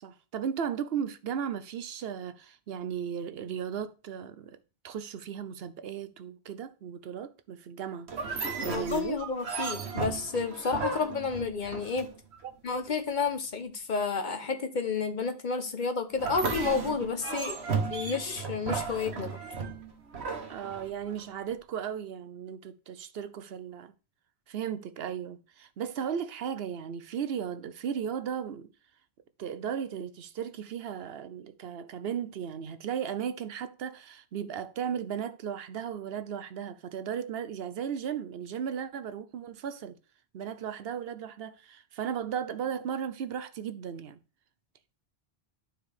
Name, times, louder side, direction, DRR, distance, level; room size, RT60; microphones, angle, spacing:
voice 1, 0.0-4.6 4.8-8.1 8.6-9.2 12.4-12.5 20.5-23.9 24.5-28.7 29.4-40.0 40.3-44.2, right 8 dB, 70° right, 0.9 m, -36 dB
sound 1, 8.1-12.4 16.1-21.2, right 4 dB, 85° right, 1.3 m, -35 dB
voice 2, 8.6-12.1 12.6-17.6 17.9-19.4, left 4 dB, 50° left, 1.0 m, -31 dB
11.5 x 4.5 x 3.4 m
omnidirectional pair, 1.1 m